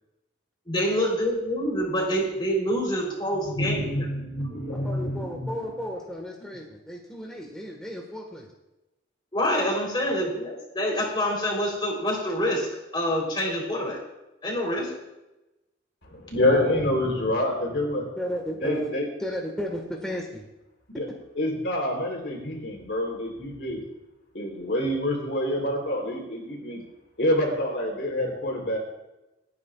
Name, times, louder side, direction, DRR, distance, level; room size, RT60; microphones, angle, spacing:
voice 1, 0.7-3.9 9.3-12.7 12.9-14.0 14.4-14.9, equal, 25° left, -2 dB, 3.6 m, -26 dB
voice 2, 3.3-5.6 16.0-18.1 18.6-19.1 20.9-21.1 21.4-23.8 24.3-26.8 27.2-28.8, left 1 dB, 65° left, 1 dB, 3.6 m, -27 dB
voice 3, 4.8-8.5 18.2-18.9 19.2-20.4, equal, 5° left, -1 dB, 1.6 m, -34 dB
28.0 x 9.6 x 2.4 m, 0.99 s
head